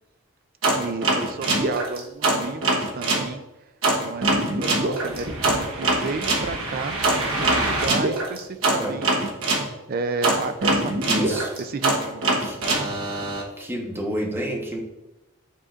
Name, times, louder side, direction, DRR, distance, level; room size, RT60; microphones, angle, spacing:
sound 1, 0.6-3.3 3.8-9.7 10.2-13.4, right 2 dB, 75° right, 1.1 m, -23 dB
voice 1, 0.8-3.4 4.0-7.0 7.4-9.3 9.9-12.4, right 4 dB, 45° right, 10 dB, 0.4 m, -32 dB
voice 2, 11.1-11.5 12.4-12.6 13.6-14.8, right 1 dB, 10° right, -2 dB, 1.1 m, -28 dB
10.0 x 3.8 x 2.4 m, 0.99 s
head